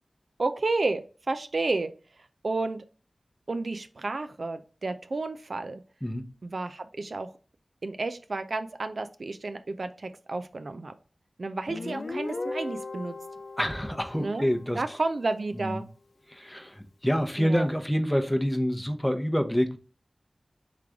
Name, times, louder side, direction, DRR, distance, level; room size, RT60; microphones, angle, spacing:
voice 1, 0.4-1.9 2.4-2.8 3.5-5.8 6.4-7.3 7.8-10.9 11.4-13.1 14.2-14.5 14.8-15.8 17.4-17.7, right 3 dB, 65° right, 0.4 m, -31 dB
Guitar, 11.7-15.1, left 2 dB, 65° left, 0.4 m, -37 dB
voice 2, 13.6-15.0 15.6-15.8 16.3-19.8, equal, 10° left, 0.7 m, -27 dB
3.7 x 3.2 x 3.4 m
cardioid pair, 45°, 0 cm